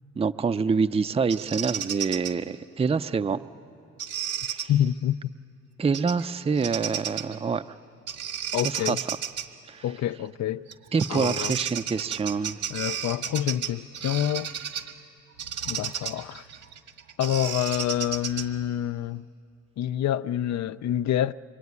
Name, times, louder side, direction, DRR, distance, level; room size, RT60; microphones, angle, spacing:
voice 1, 0.2-3.4 4.5-4.7 5.8-7.7 8.5-9.0 9.7-9.8 10.9-12.6, right 5 dB, 20° right, 0.5 m, -26 dB
Bird vocalization bird call bird song, 1.3-2.3 4.0-4.7 5.9-6.2 6.6-7.4 8.1-9.5 10.7-10.8 11.0-14.9 15.4-18.6, right 8 dB, 75° right, 1.9 m, -33 dB
voice 2, 4.7-5.3 8.5-9.0 9.8-10.7 11.1-11.6 12.7-14.5 15.7-16.4 17.2-19.3 19.8-21.3, left 11 dB, 65° left, 0.5 m, -27 dB
25.0 x 23.0 x 9.6 m
cardioid pair, 90°, 30 cm